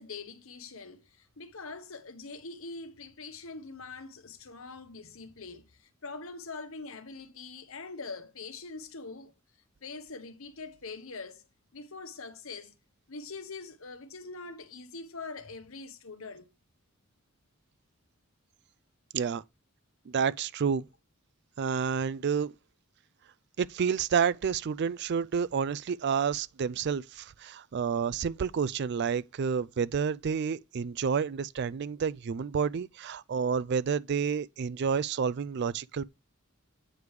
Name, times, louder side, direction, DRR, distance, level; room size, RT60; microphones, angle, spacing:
voice 1, 0.0-9.3 9.8-11.4 11.7-12.7 13.1-16.5, left 3 dB, 70° left, 1.1 m, -43 dB
voice 2, 20.1-20.8 21.6-22.5 23.6-36.0, right 6 dB, 50° right, 0.4 m, -29 dB
8.6 x 4.9 x 4.7 m
head